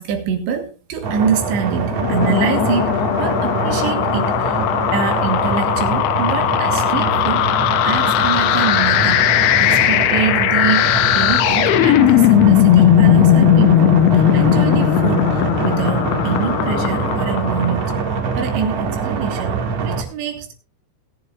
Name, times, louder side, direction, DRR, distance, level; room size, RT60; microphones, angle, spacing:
voice 1, 0.0-7.5 7.9-17.8 18.4-19.5 19.8-20.5, right 6 dB, 80° right, 4 dB, 3.9 m, -25 dB
sound 1, 1.0-20.0, right 5 dB, 45° right, 2.3 m, -24 dB
sound 2, 1.8-18.2, left 12 dB, 80° left, 2.5 m, -17 dB
19.0 x 11.0 x 2.4 m, 0.32 s
omnidirectional pair, 5.2 m